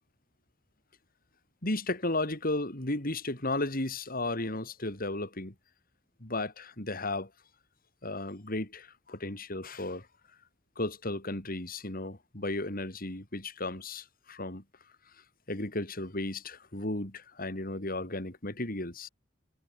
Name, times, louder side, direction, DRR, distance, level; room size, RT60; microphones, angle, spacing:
voice 1, 1.6-5.5 6.2-7.3 8.0-10.1 10.8-14.6 15.5-19.1, left 2 dB, 50° left, 4.8 m, -34 dB
head